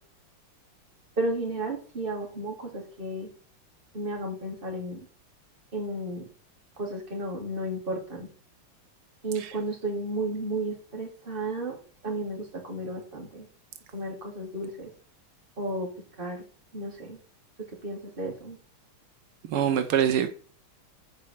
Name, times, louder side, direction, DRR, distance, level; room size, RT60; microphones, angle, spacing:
voice 1, 1.2-3.3 3.9-5.1 5.7-6.3 6.8-8.3 9.2-13.5 13.9-14.9 15.6-15.9 16.2-16.4 16.7-17.2 17.6-18.6, right 1 dB, 25° right, 2.8 m, -33 dB
voice 2, 19.4-20.3, right 9 dB, 85° right, 1.8 m, -24 dB
9.4 x 4.9 x 6.1 m
omnidirectional pair, 2.4 m